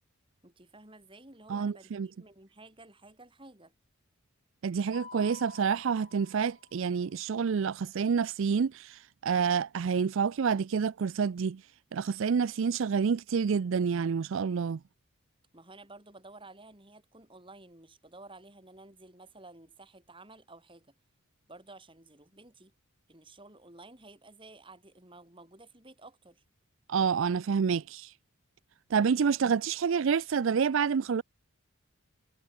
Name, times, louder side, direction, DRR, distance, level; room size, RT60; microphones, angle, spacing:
voice 1, 0.4-3.7 15.5-20.9 21.5-22.7 23.1-26.4, right 2 dB, 25° right, 4.4 m, -53 dB
voice 2, 1.5-2.1 4.6-11.6 11.9-14.8 26.9-28.1 28.9-31.2, right 6 dB, 60° right, 0.4 m, -28 dB
Mallet percussion, 4.9-7.0, left 5 dB, 30° left, 6.8 m, -50 dB
head